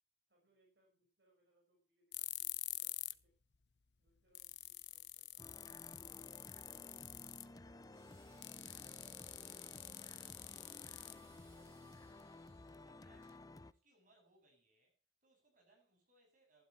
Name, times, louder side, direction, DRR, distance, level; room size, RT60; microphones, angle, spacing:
voice 1, 0.3-3.3 4.0-5.8 6.2-8.3 11.3-11.9 12.4-12.9, right 1 dB, 75° right, 5.9 m, -77 dB
sound 1, 2.1-3.2 3.5-3.6 4.1-4.2 4.3-7.6 8.4-11.6, left 17 dB, 70° left, 0.7 m, -47 dB
sound 2, 5.4-13.7, left 2 dB, 20° left, 0.6 m, -55 dB
sound 3, 7.9-13.4, equal, 15° right, 6.7 m, -67 dB
voice 2, 11.6-13.3 13.7-16.7, right 1 dB, 50° right, 7.6 m, -73 dB
12.5 x 12.0 x 4.6 m
head